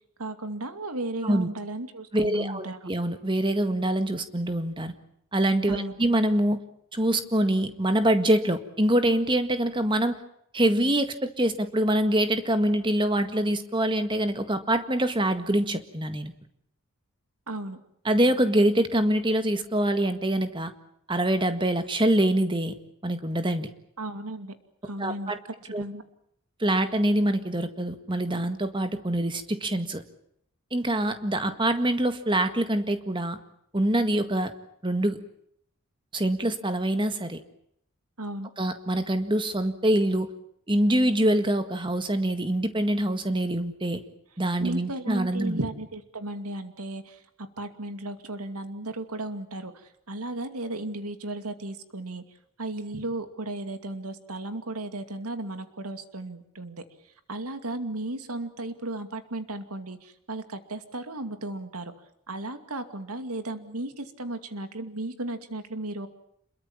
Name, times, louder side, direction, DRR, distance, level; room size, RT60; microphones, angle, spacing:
voice 1, 0.2-2.9 5.7-6.0 17.5-17.8 24.0-24.5 24.8-25.3 25.8-26.0 38.2-38.5 44.6-52.2 52.6-56.8 57.3-61.9 62.3-66.1, right 2 dB, 85° right, 9 dB, 2.6 m, -35 dB
voice 2, 2.1-4.9 5.3-6.6 6.9-10.1 10.5-16.3 18.1-20.7 21.1-22.7 23.0-23.7 25.0-25.4 25.7-25.8 26.6-30.0 30.7-33.4 33.7-34.5 34.8-35.2 36.1-37.4 38.6-40.3 40.7-44.0 44.4-45.6, right 1 dB, 20° right, 9 dB, 1.8 m, -25 dB
27.5 x 22.0 x 7.3 m, 0.72 s
head